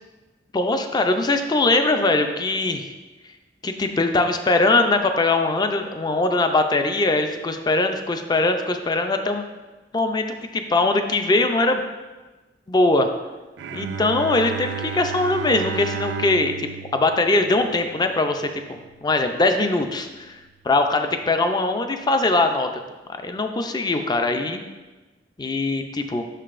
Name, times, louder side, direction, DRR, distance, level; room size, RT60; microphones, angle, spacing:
voice 1, 0.5-2.9 3.6-9.4 9.9-10.2 10.5-11.8 12.7-13.1 13.7-16.5 16.9-20.4 20.6-22.7 23.2-24.6 25.4-26.2, left 2 dB, 25° left, 6 dB, 0.4 m, -21 dB
Bowed string instrument, 13.6-18.8, right 6 dB, 90° right, 0.4 m, -33 dB
6.6 x 5.8 x 2.5 m, 1.2 s
head